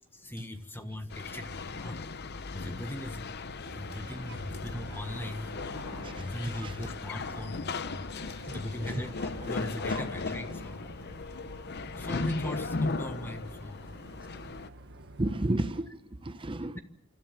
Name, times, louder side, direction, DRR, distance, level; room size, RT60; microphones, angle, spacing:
voice 1, 0.1-2.0 2.5-3.3 3.7-5.5 6.2-8.1 8.5-10.9 11.9-13.9 16.7-16.8, left 1 dB, 10° left, 1.2 m, -39 dB
sound 1, 1.1-14.7, left 3 dB, 50° left, 0.7 m, -37 dB
sound 2, 3.6-15.8, right 2 dB, 50° right, 1.2 m, -50 dB
Thunder, 5.0-12.8 13.1-13.2 13.6-13.7, left 1 dB, 65° left, 7.3 m, -52 dB
voice 2, 6.0-6.8 8.4-8.6 15.2-16.8, right 1 dB, 25° right, 0.8 m, -33 dB
28.0 x 13.5 x 7.3 m
head